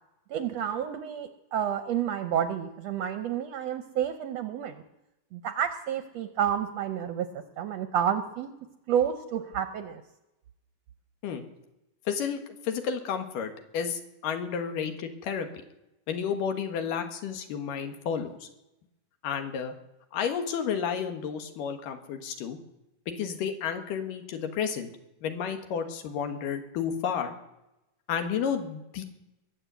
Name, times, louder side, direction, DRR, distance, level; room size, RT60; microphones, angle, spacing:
voice 1, 0.3-4.8 5.3-8.5 8.9-10.0, right 9 dB, 75° right, 9 dB, 1.6 m, -30 dB
voice 2, 12.1-15.5 16.1-18.5 19.2-19.7 20.1-22.6 23.1-24.9 25.2-27.3 28.1-29.0, left 7 dB, 85° left, 7 dB, 3.1 m, -31 dB
21.5 x 7.6 x 8.1 m, 0.91 s
omnidirectional pair, 3.7 m